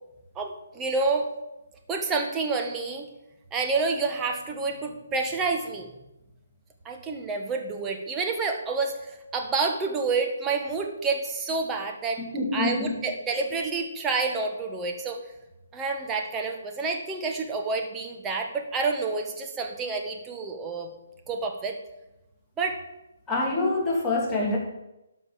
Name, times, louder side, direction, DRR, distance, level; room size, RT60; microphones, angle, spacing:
voice 1, 0.3-1.3 1.9-3.1 3.5-5.9 6.8-12.2 12.5-15.2 15.7-20.9 21.3-21.8 22.6-22.8, right 4 dB, 15° right, 3 dB, 1.5 m, -28 dB
voice 2, 12.2-13.0 23.3-24.6, left 2 dB, 10° left, -4 dB, 2.8 m, -26 dB
12.0 x 5.4 x 7.0 m, 0.93 s
hypercardioid pair, 150°, 0 cm